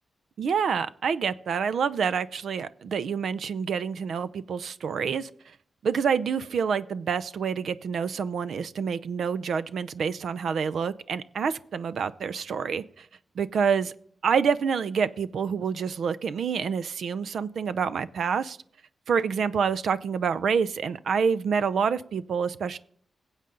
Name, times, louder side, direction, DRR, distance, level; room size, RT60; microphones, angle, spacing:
voice 1, 0.4-5.3 5.8-13.1 13.4-13.9 14.2-18.6 19.1-22.8, right 6 dB, 75° right, 14 dB, 0.5 m, -27 dB
21.5 x 8.1 x 3.8 m, 0.62 s
wide cardioid pair, 160°, 0 cm